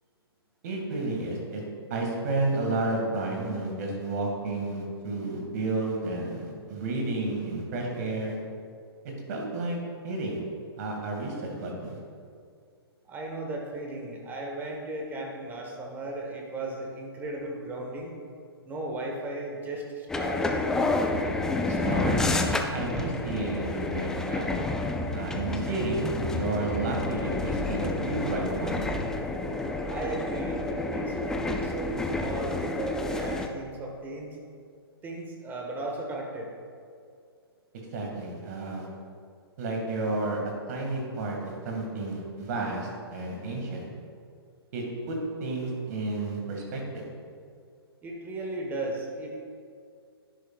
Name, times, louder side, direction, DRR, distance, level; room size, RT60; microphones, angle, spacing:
voice 1, 0.6-1.6 1.9-8.4 9.0-9.8 10.0-10.4 10.8-12.0 21.7-22.2 22.7-24.5 25.1-28.8 37.9-38.9 39.6-40.4 40.7-43.9 44.7-47.1, right 2 dB, 40° right, 0 dB, 2.1 m, -31 dB
voice 2, 13.0-18.1 18.6-20.6 29.9-34.4 35.0-36.5 48.0-49.3, right 2 dB, 15° right, 0 dB, 1.3 m, -36 dB
sound 1, 20.1-33.5, left 2 dB, 5° left, 0.3 m, -29 dB
11.0 x 10.5 x 2.4 m, 2.2 s
figure-of-eight pair, 120°, 13 cm